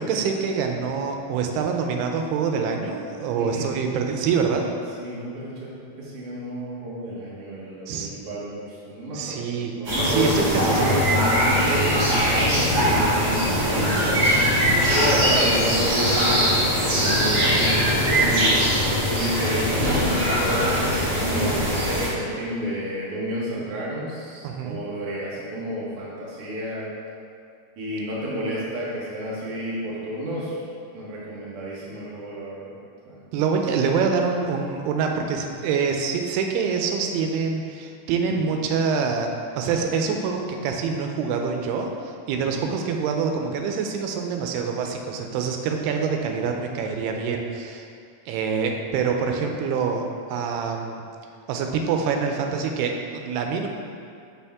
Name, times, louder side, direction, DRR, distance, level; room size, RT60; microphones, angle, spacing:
voice 1, 0.0-4.7 7.9-8.1 9.1-9.7 10.0-10.4 10.7-11.0 24.4-24.8 33.3-39.3 39.6-47.9 48.3-50.0 50.3-51.0 51.5-53.7, right 5 dB, 90° right, 3 dB, 2.6 m, -25 dB
voice 2, 5.0-14.6 14.9-16.6 16.9-18.5 19.1-26.9 27.8-30.6 30.9-32.7 33.0-33.3 38.4-38.5 42.4-42.7, right 1 dB, 65° right, -7 dB, 1.5 m, -30 dB
sound 1, 9.8-22.1, equal, 40° right, 1.7 m, -21 dB
7.0 x 5.7 x 3.5 m, 2.4 s
omnidirectional pair, 4.5 m